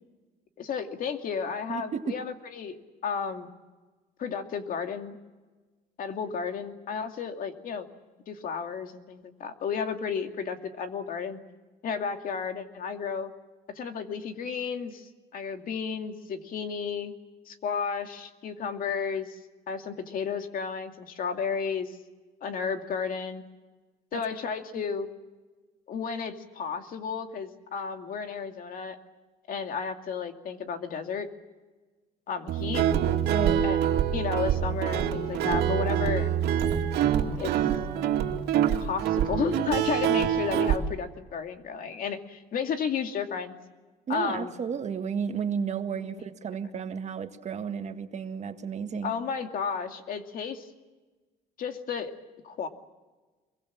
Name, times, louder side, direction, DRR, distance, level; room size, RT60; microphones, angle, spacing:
voice 1, 0.6-2.8 3.0-3.5 4.2-5.2 6.0-7.9 8.3-11.4 11.8-13.3 13.7-17.1 17.5-19.4 19.7-22.0 22.4-23.4 24.1-25.1 25.9-29.0 29.5-31.3 32.3-32.9 33.6-33.8 34.1-36.3 37.4-37.6 38.8-43.6 44.1-44.5 46.0-46.2 49.0-50.7 51.6-52.1 52.4-52.7, left 6 dB, 55° left, 2.5 m, -33 dB
voice 2, 1.7-2.2 24.1-24.2 33.3-33.6 44.1-49.1, right 7 dB, 40° right, 1.8 m, -32 dB
Guitar, 32.5-40.8, right 9 dB, 75° right, 2.6 m, -25 dB
25.5 x 23.0 x 7.4 m
cardioid pair, 110°, 17 cm